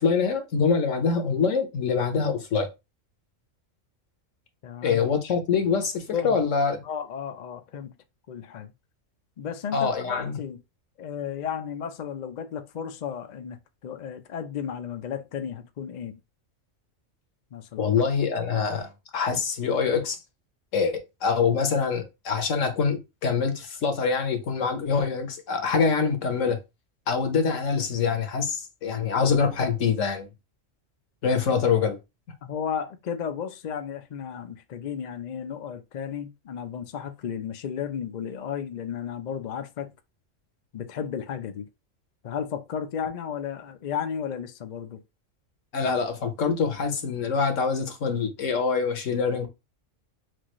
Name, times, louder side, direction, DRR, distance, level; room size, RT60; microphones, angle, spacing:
voice 1, 0.0-2.7 4.8-6.8 9.7-10.4 17.8-20.2 20.7-26.6 27.1-30.3 31.2-32.0 45.7-49.5, left 5 dB, 75° left, 1.3 m, -25 dB
voice 2, 4.6-5.0 6.1-6.4 6.8-7.9 8.3-8.7 9.4-10.6 11.0-13.6 13.8-16.2 17.5-17.9 32.4-39.9 40.7-41.7 42.2-45.0, left 8 dB, 55° left, 0.5 m, -33 dB
6.1 x 2.5 x 3.0 m
omnidirectional pair, 1.3 m